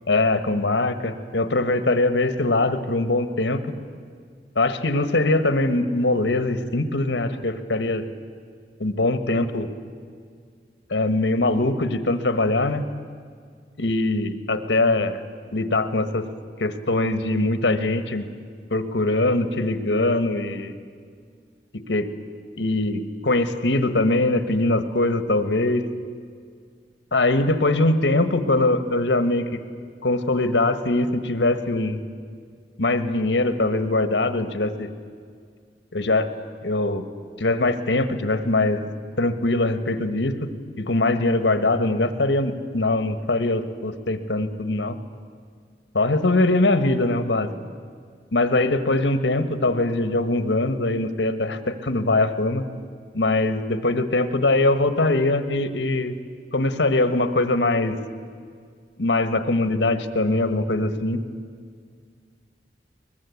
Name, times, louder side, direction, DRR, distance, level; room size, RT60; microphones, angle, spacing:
voice 1, 0.1-3.6 4.5-8.0 8.8-9.7 10.9-12.8 13.8-15.2 15.5-16.2 16.6-18.2 18.7-20.7 21.9-22.1 22.6-25.8 27.1-29.6 30.0-32.0 32.8-34.9 35.9-36.3 36.6-37.0 37.4-38.8 39.2-40.5 40.8-45.0 45.9-47.5 48.3-52.6 53.1-56.1 56.5-58.0 59.0-61.2, left 2 dB, 85° left, 10 dB, 1.4 m, -22 dB
23.0 x 20.5 x 8.5 m, 2.1 s
head